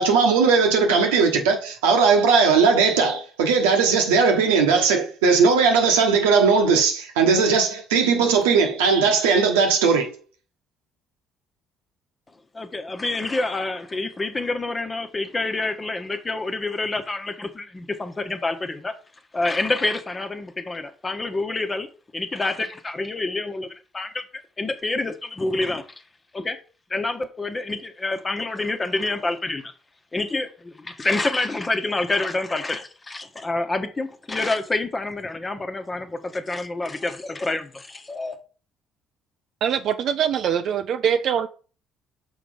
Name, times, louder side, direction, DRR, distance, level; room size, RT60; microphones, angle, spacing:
voice 1, 0.0-10.1, right 5 dB, 85° right, 1.2 m, -18 dB
voice 2, 12.5-18.9 19.3-21.9 22.1-23.7 23.9-24.2 24.6-25.8 26.3-26.6 26.9-29.7 30.1-38.4, left 2 dB, 25° left, 1.1 m, -27 dB
voice 3, 39.6-41.5, right 8 dB, 60° right, 0.4 m, -23 dB
5.8 x 4.0 x 5.0 m
hypercardioid pair, 55°, 0 cm